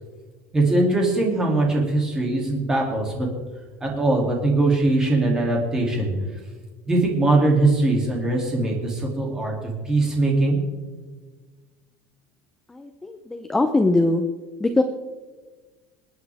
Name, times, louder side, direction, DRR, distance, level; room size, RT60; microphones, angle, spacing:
voice 1, 0.5-3.3 3.8-6.1 6.9-10.6, right 2 dB, 10° right, -1 dB, 2.8 m, -21 dB
voice 2, 12.7-14.2 14.6-14.8, left 2 dB, 5° left, 7 dB, 0.6 m, -21 dB
27.0 x 9.3 x 3.5 m, 1.4 s
cardioid pair, 180°, 5 cm